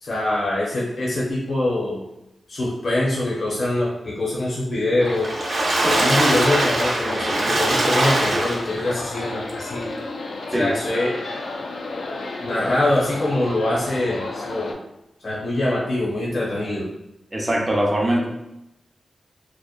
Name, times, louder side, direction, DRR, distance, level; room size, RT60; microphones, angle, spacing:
voice 1, 0.0-2.0 2.5-5.3 5.8-9.9 10.5-11.1 12.4-14.8 15.2-16.9, left 1 dB, 65° left, -6 dB, 0.7 m, -24 dB
sound 1, 5.0-14.7, left 3 dB, 80° left, 0.3 m, -32 dB
Water / Splash splatter, 5.1-8.9 9.5-9.6 9.9-10.0, right 1 dB, 75° right, 0.6 m, -21 dB
voice 2, 17.3-18.3, right 1 dB, 20° right, 0 dB, 0.5 m, -21 dB
2.8 x 2.1 x 2.4 m, 0.87 s
wide cardioid pair, 85°, 0 cm